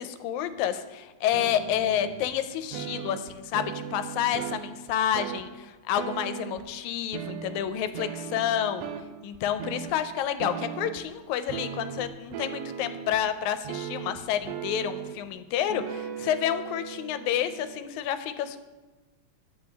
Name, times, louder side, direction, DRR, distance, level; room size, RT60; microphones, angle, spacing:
voice 1, 0.0-8.9 9.2-18.6, left 10 dB, 90° left, 10 dB, 2.0 m, -29 dB
sound 1, 1.3-2.3 2.7-5.5 5.9-6.7 7.1-9.1 9.3-9.9 10.4-11.1 11.5-13.2 13.6-15.3 15.7-17.8, right 9 dB, 75° right, 1.6 m, -37 dB
9.9 x 7.9 x 3.4 m, 1.2 s
omnidirectional pair, 3.3 m